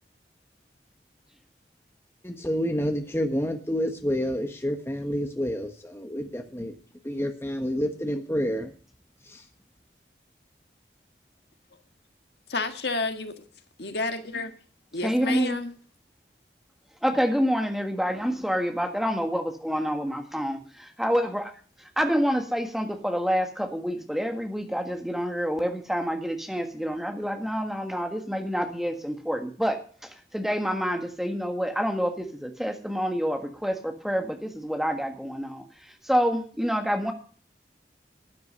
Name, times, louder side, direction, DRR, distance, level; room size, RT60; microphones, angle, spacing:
voice 1, 2.2-6.7 7.0-8.7 9.3-9.4, equal, 15° left, 5 dB, 1.2 m, -29 dB
voice 2, 12.5-13.4 13.8-14.5 14.9-15.7, left 3 dB, 75° left, 7 dB, 1.6 m, -30 dB
voice 3, 15.0-15.6 17.0-21.5 21.8-35.6 36.0-37.1, equal, ahead, 4 dB, 1.6 m, -27 dB
13.0 x 9.4 x 6.8 m, 0.43 s
head